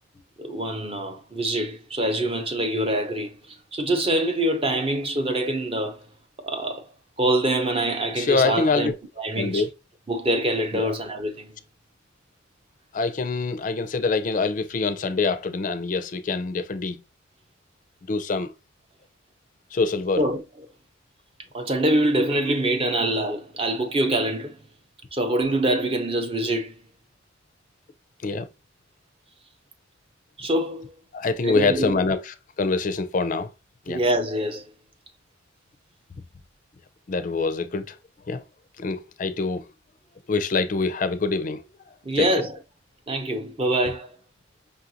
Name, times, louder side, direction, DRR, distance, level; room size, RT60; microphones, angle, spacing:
voice 1, 0.4-6.0 6.4-6.9 7.2-9.6 10.1-11.5 20.1-20.7 21.5-24.6 25.1-26.7 30.4-30.9 31.4-32.0 33.9-34.7 42.0-42.6 43.1-44.2, right 1 dB, 30° right, 0.6 m, -25 dB
voice 2, 8.2-8.9 9.4-9.7 10.7-10.9 12.9-17.0 18.1-18.5 19.7-20.2 28.2-28.5 31.1-33.5 33.9-34.0 37.1-37.9 38.3-38.4 38.8-39.7 40.3-41.6 42.1-42.3, left 4 dB, 40° left, 0.4 m, -25 dB
5.4 x 2.5 x 2.7 m
head